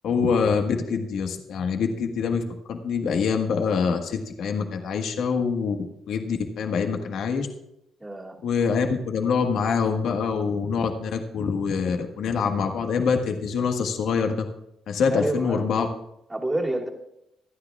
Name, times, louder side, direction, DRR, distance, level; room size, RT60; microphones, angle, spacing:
voice 1, 0.0-2.4 2.7-5.8 6.1-7.5 8.4-14.3 14.9-15.9, left 5 dB, 75° left, 3 dB, 1.5 m, -25 dB
voice 2, 8.0-8.3 15.1-15.6 16.3-16.9, right 1 dB, 15° right, -2 dB, 2.5 m, -28 dB
26.0 x 9.8 x 2.4 m, 0.84 s
cardioid pair, 90°, 0 cm